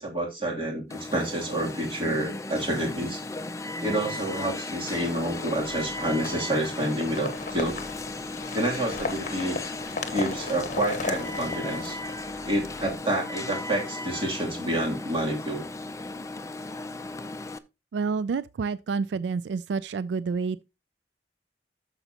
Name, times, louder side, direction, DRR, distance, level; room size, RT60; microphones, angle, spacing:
voice 1, 0.0-3.2 3.8-7.8 8.5-9.6 10.1-12.0 12.5-15.6, right 1 dB, 30° right, 2.9 m, -28 dB
Alarm, 0.9-17.6, left 2 dB, 20° left, 0.5 m, -36 dB
sound 1, 4.9-12.9, left 3 dB, 45° left, 1.1 m, -37 dB
voice 2, 17.9-20.6, right 5 dB, 80° right, 0.3 m, -29 dB
12.0 x 6.8 x 2.9 m
head